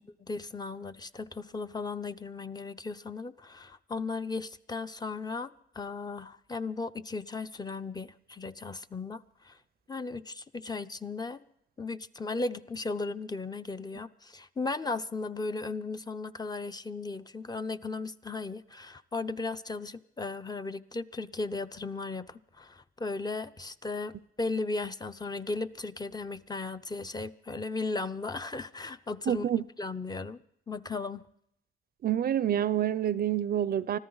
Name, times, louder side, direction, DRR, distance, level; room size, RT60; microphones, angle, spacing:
voice 1, 0.2-9.6 9.9-11.4 11.8-29.5 29.8-30.4 30.7-31.2, left 3 dB, 20° left, 0.6 m, -36 dB
voice 2, 29.3-29.6 32.0-34.0, right 10 dB, 50° right, 0.5 m, -27 dB
25.0 x 14.0 x 3.9 m
cardioid pair, 90°, 20 cm